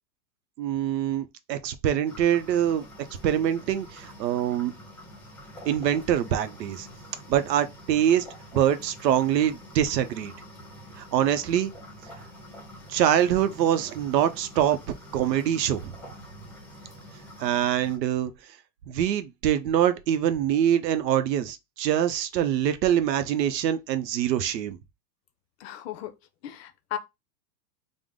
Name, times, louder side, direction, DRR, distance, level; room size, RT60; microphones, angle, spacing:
voice 1, 0.6-2.8 3.2-4.7 5.6-6.9 7.3-8.3 8.5-10.3 11.0-11.7 12.9-14.8 15.1-15.9 17.4-18.3 18.9-24.8, right 10 dB, 90° right, 0.7 m, -24 dB
sound 1, 2.0-18.0, equal, 5° left, 0.8 m, -47 dB
voice 2, 25.6-26.1 26.4-27.0, left 11 dB, 40° left, 0.5 m, -35 dB
3.4 x 2.0 x 3.6 m
supercardioid pair, 145°, 49 cm